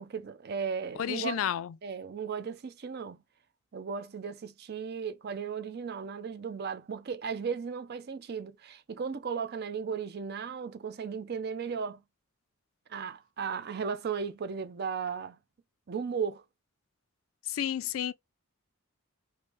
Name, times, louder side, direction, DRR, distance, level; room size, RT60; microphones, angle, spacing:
voice 1, 0.0-1.4 1.8-3.2 3.7-12.0 12.9-15.4 15.9-16.4, right 6 dB, 50° right, 0.5 m, -36 dB
voice 2, 1.0-1.7 17.5-18.1, left 10 dB, 75° left, 0.3 m, -31 dB
3.2 x 2.6 x 3.0 m
head